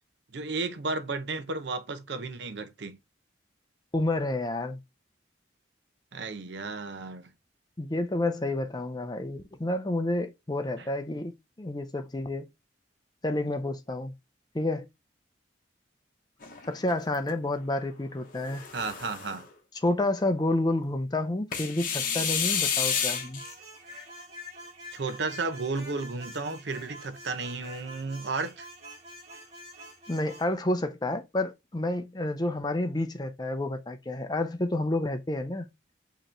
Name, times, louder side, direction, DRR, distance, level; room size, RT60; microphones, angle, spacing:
voice 1, 0.3-3.0 6.1-7.3 18.7-19.5 24.9-28.7, right 3 dB, 65° right, 0.7 m, -33 dB
voice 2, 3.9-4.8 7.8-12.5 13.2-14.1 14.5-14.9 16.7-18.7 19.8-23.4 30.1-35.7, left 1 dB, 20° left, 0.5 m, -29 dB
sound 1, 16.4-17.3 18.3-19.4 21.5-23.5, left 7 dB, 45° left, 0.9 m, -30 dB
sound 2, 22.5-30.5, equal, 35° right, 1.7 m, -46 dB
5.0 x 3.0 x 3.2 m
head